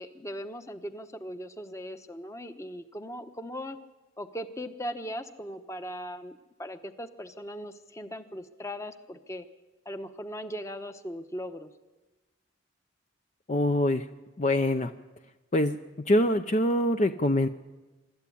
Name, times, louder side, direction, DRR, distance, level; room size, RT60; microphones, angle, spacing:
voice 1, 0.0-3.8 4.2-9.4 9.9-11.7, equal, 15° left, 9 dB, 1.0 m, -39 dB
voice 2, 13.5-14.1 14.4-14.9 15.5-15.8 16.1-17.5, left 1 dB, 35° left, 7 dB, 0.6 m, -24 dB
24.5 x 12.5 x 8.6 m, 1.1 s
head